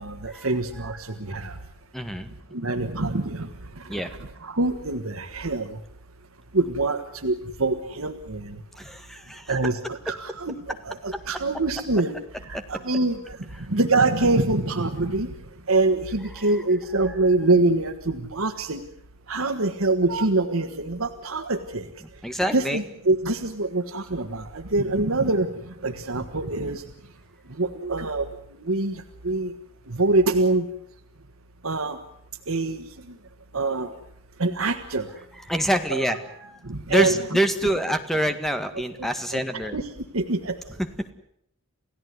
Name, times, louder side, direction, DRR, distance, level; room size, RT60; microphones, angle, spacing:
voice 1, 0.0-1.6 2.5-5.8 6.5-8.5 9.5-12.1 12.4-13.4 13.7-15.3 15.7-18.8 19.3-21.9 22.5-25.5 25.8-26.8 27.5-28.3 28.7-29.5 29.9-30.7 31.6-32.0 32.5-32.8 33.5-33.9 34.4-35.1 35.9-36.2 36.6-37.7 39.0-40.6, right 2 dB, 90° right, 7 dB, 1.6 m, -25 dB
voice 2, 1.9-2.3 3.9-4.1 8.8-9.5 11.1-11.2 12.5-12.6 17.1-17.2 22.2-22.8 35.5-36.6 36.9-39.8 40.8-40.9, right 1 dB, ahead, 8 dB, 1.8 m, -26 dB
29.0 x 16.0 x 9.6 m, 0.72 s
head